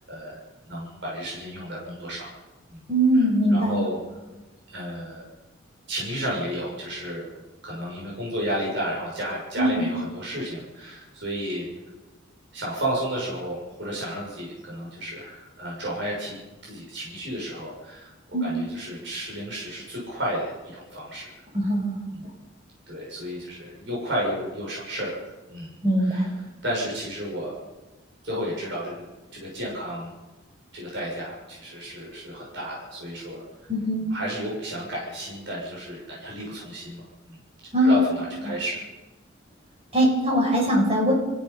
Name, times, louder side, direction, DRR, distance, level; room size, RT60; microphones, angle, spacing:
voice 1, 0.1-0.4 0.7-2.3 2.7-2.8 3.1-4.0 4.7-5.2 5.9-7.3 7.6-11.7 12.5-16.4 16.6-21.3 22.1-22.2 22.9-25.1 25.5-26.3 26.6-27.6 28.2-29.0 29.3-30.1 30.7-33.4 34.1-37.4 37.8-38.8, equal, 60° right, -4 dB, 6.8 m, -32 dB
voice 2, 2.9-3.8 9.6-9.9 18.3-18.5 21.5-21.9 25.8-26.4 33.7-34.0 37.7-38.1 39.9-41.1, equal, 30° right, -1 dB, 6.5 m, -21 dB
28.0 x 16.0 x 5.8 m, 1.2 s
head